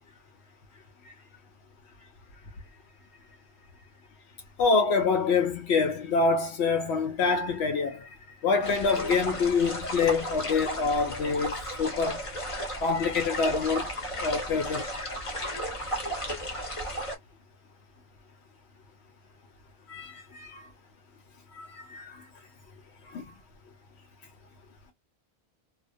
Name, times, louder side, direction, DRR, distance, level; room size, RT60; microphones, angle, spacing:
voice 1, 4.6-8.2 8.4-12.3 12.8-13.9 14.2-15.2 19.9-20.7 21.5-22.3 23.0-23.3, left 4 dB, 75° left, 0.8 m, -26 dB
sound 1, 8.6-17.2, equal, 35° left, 0.8 m, -34 dB
2.3 x 2.2 x 2.4 m
omnidirectional pair, 1.1 m